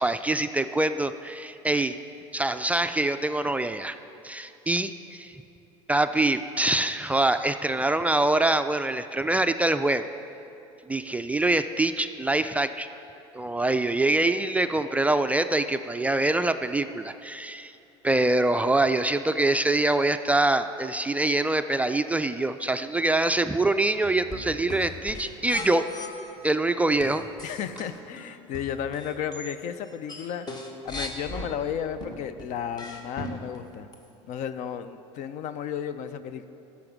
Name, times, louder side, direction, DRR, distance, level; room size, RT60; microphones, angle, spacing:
voice 1, 0.0-2.0 2.3-4.0 4.2-5.3 5.9-10.1 10.9-12.9 13.3-17.7 18.0-25.8 26.4-27.2, right 2 dB, 10° right, 9 dB, 0.3 m, -24 dB
sound 1, 24.0-26.1 27.0-29.6 29.9-31.5 32.0-33.6 33.9-34.0, left 1 dB, 25° left, 1.3 m, -38 dB
voice 2, 27.4-30.5 30.8-33.9 34.3-36.5, left 8 dB, 55° left, 12 dB, 0.5 m, -33 dB
11.0 x 7.1 x 6.0 m, 2.7 s
supercardioid pair, 100°, 15 cm